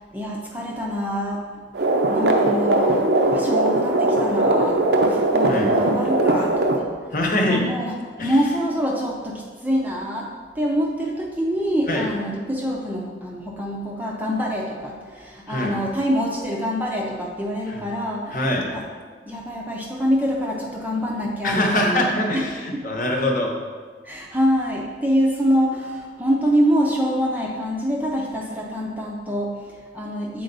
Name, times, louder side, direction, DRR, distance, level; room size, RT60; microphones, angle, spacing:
voice 1, 0.0-1.4 2.1-3.0 3.3-6.9 7.4-7.9 8.2-18.4 18.7-18.8 19.3-22.1 22.3-22.4 22.7-22.8 24.0-30.4, equal, 10° right, -2 dB, 0.6 m, -25 dB
sound 1, 1.7-6.8, right 2 dB, 65° right, 0.6 m, -19 dB
voice 2, 7.1-7.6 8.2-8.3 11.9-12.0 15.5-15.7 17.7-17.8 18.3-18.6 21.4-23.5, left 1 dB, 45° left, 0 dB, 1.0 m, -23 dB
7.8 x 4.4 x 4.0 m, 1.5 s
head